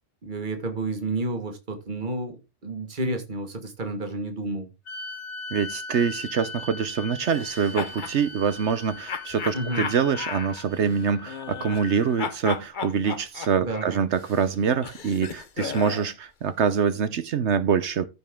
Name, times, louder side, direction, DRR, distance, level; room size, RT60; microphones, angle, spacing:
voice 1, 0.2-4.7 9.5-9.8 13.6-14.0, right 2 dB, 40° right, 1.8 m, -31 dB
sound 1, 4.8-12.3, left 3 dB, 75° left, 2.8 m, -39 dB
voice 2, 5.5-18.1, right 7 dB, 75° right, 1.1 m, -25 dB
sound 2, 7.3-8.2 9.1-11.9 12.2-16.1, left 6 dB, 45° left, 1.0 m, -35 dB
14.5 x 5.3 x 3.7 m
omnidirectional pair, 1.2 m